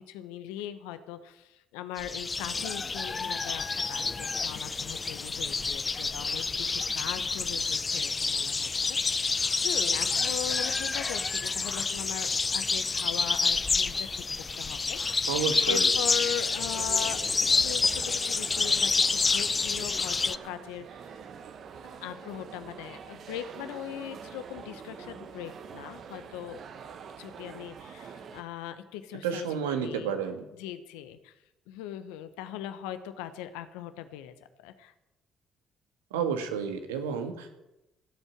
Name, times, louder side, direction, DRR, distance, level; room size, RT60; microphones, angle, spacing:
voice 1, 0.1-9.3 9.6-14.2 14.6-15.3 15.6-17.2 17.6-20.9 21.8-26.6 27.2-30.1 30.6-31.3 31.7-34.3 34.6-34.9, left 11 dB, 80° left, 11 dB, 1.1 m, -40 dB
sound 1, 2.0-20.4, left 4 dB, 35° left, 0.7 m, -28 dB
voice 2, 15.3-15.9 29.2-30.4 36.1-37.5, right 7 dB, 85° right, 6 dB, 1.7 m, -31 dB
sound 2, 16.2-28.4, right 6 dB, 60° right, 1.3 m, -45 dB
16.0 x 8.2 x 7.4 m, 0.95 s
hypercardioid pair, 50°, 0 cm